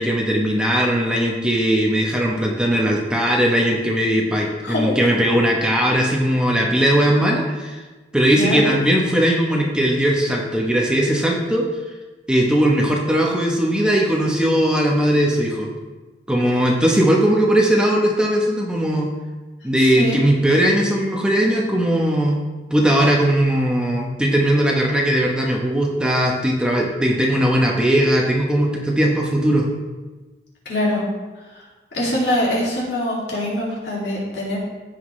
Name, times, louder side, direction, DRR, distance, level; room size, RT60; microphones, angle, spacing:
voice 1, 0.0-7.8 8.1-11.7 12.3-15.7 16.3-19.1 19.6-22.4 22.7-29.6, right 1 dB, 5° right, -2 dB, 1.0 m, -19 dB
voice 2, 4.6-5.0 8.3-8.6 19.8-20.2 30.6-31.0 31.5-31.7 31.9-34.6, left 1 dB, 65° left, -5 dB, 2.5 m, -23 dB
15.5 x 5.8 x 3.2 m, 1.2 s
head